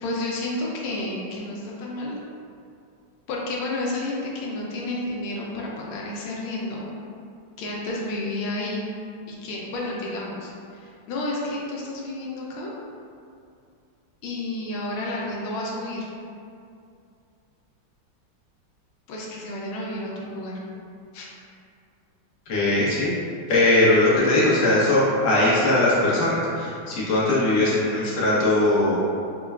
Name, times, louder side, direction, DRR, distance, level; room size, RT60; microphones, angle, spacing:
voice 1, 0.0-2.2 3.3-6.9 7.6-8.9 9.3-12.7 14.2-16.1 19.1-20.6 21.1-21.3, left 2 dB, 85° left, -3 dB, 1.4 m, -31 dB
voice 2, 22.5-23.1 23.5-29.0, left 2 dB, 55° left, -8 dB, 1.1 m, -20 dB
5.2 x 2.2 x 2.3 m, 2.4 s
omnidirectional pair, 2.2 m